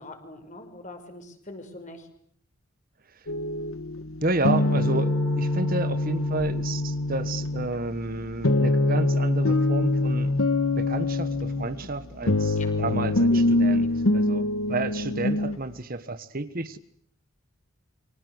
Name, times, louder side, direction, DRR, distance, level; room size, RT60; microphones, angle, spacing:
voice 1, 0.0-2.1 12.6-12.7 13.3-13.9, left 1 dB, 35° left, 6 dB, 5.5 m, -42 dB
sound 1, 3.3-15.6, left 2 dB, 75° left, 1.5 m, -24 dB
voice 2, 4.2-10.3 10.8-16.8, right 2 dB, 40° right, 12 dB, 1.4 m, -31 dB
sound 2, 4.6-9.4, left 2 dB, 15° right, 4.2 m, -43 dB
29.0 x 25.0 x 8.1 m, 0.63 s
head